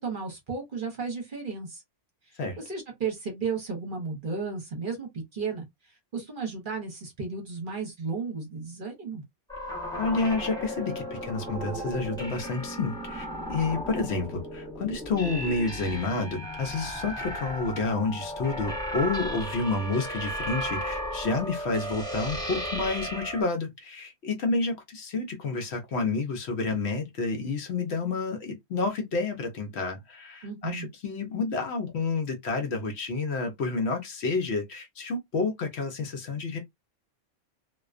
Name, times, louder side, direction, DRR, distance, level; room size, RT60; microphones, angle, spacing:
voice 1, 0.0-1.8 2.3-5.6 6.1-9.2 30.4-30.9, right 5 dB, 45° right, 0.9 m, -34 dB
sound 1, 9.5-23.4, equal, 5° left, 0.5 m, -35 dB
voice 2, 9.9-36.6, left 3 dB, 65° left, 0.8 m, -29 dB
2.4 x 2.2 x 2.3 m
omnidirectional pair, 1.3 m